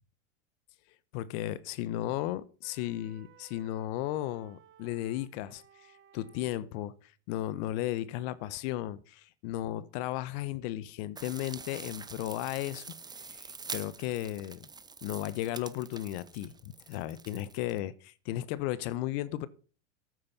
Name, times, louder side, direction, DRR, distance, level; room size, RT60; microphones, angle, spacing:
voice 1, 1.1-12.9 13.3-14.7 15.0-19.5, left 14 dB, 55° left, 1.1 m, -35 dB
sound 1, 2.6-6.6, right 9 dB, 30° right, 1.5 m, -59 dB
sound 2, 11.2-17.8, right 4 dB, 10° right, 0.9 m, -45 dB
12.5 x 8.8 x 5.5 m
hypercardioid pair, 105°, 38 cm